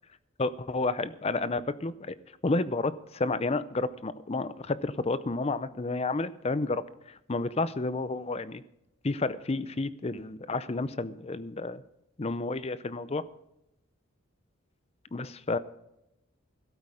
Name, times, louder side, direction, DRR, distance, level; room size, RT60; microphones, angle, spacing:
voice 1, 0.4-2.2 2.4-8.6 9.0-11.8 12.2-13.2 15.1-15.6, left 3 dB, 30° left, 15 dB, 0.5 m, -31 dB
13.0 x 12.5 x 5.0 m, 0.84 s
head